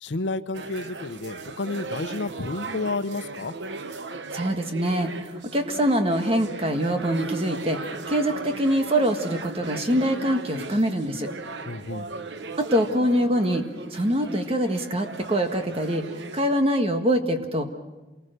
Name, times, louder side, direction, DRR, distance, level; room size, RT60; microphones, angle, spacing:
voice 1, 0.0-3.5 11.6-12.1, left 2 dB, 90° left, 11 dB, 0.9 m, -31 dB
sound 1, 0.5-16.4, right 3 dB, 85° right, 1.0 m, -37 dB
voice 2, 4.3-11.3 12.6-16.0 16.3-17.8, equal, 35° right, 6 dB, 1.6 m, -24 dB
27.5 x 19.5 x 6.7 m, 1.2 s
head